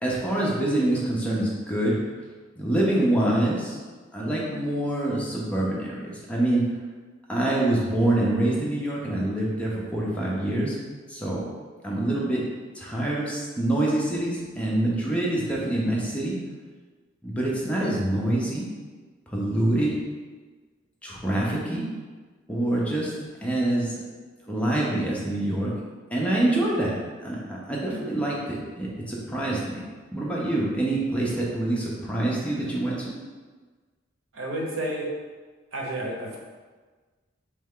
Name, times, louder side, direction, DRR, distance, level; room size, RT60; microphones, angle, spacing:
voice 1, 0.0-2.0 2.6-3.8 4.1-6.6 7.3-10.8 11.1-11.4 11.8-12.4 12.7-16.4 17.2-18.7 19.3-20.0 21.0-21.8 22.5-23.1 23.4-23.9 24.5-25.7 26.1-26.9 27.2-29.8 30.1-33.1, right 1 dB, 5° left, -5 dB, 0.6 m, -25 dB
voice 2, 34.3-35.1 35.7-36.4, right 1 dB, 85° right, -2 dB, 0.9 m, -30 dB
3.3 x 3.2 x 3.7 m, 1.4 s
head